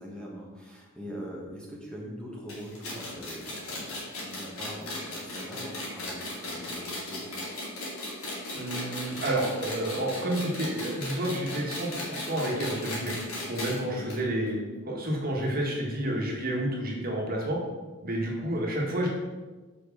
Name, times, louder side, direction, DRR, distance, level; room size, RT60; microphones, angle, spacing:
voice 1, 0.0-7.6 13.8-14.1 18.2-18.6, equal, 5° left, -4 dB, 1.3 m, -42 dB
sound 1, 2.5-13.8 14.1-14.2 14.5-14.6 15.4-15.5, left 1 dB, 85° left, 2.7 m, -37 dB
voice 2, 8.5-13.1 13.5-14.6 14.8-17.6 18.0-19.1, right 1 dB, 45° right, -2 dB, 1.7 m, -30 dB
6.1 x 5.1 x 6.0 m, 1.3 s
head